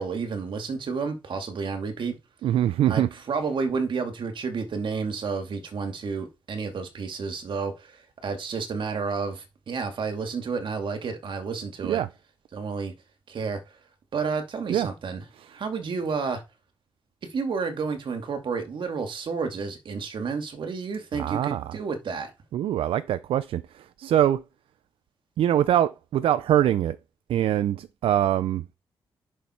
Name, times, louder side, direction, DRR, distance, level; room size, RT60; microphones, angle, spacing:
voice 1, 0.0-2.2 2.9-12.0 12.5-12.9 13.3-13.6 14.1-15.2 15.5-16.4 17.3-22.3, right 5 dB, 65° right, 2.5 m, -30 dB
voice 2, 2.4-3.4 11.8-12.1 14.7-14.9 15.3-15.5 21.1-21.8 22.5-24.4 25.4-27.0 27.3-28.6, right 11 dB, 85° right, 0.5 m, -24 dB
10.0 x 6.5 x 4.5 m
cardioid pair, 70°, 9 cm